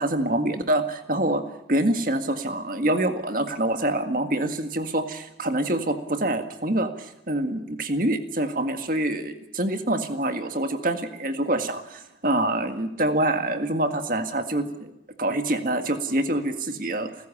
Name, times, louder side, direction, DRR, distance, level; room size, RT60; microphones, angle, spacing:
voice 1, 0.0-1.4 1.7-14.9 15.2-17.1, right 1 dB, 45° right, 7 dB, 1.9 m, -26 dB
28.5 x 14.5 x 8.6 m, 0.87 s
head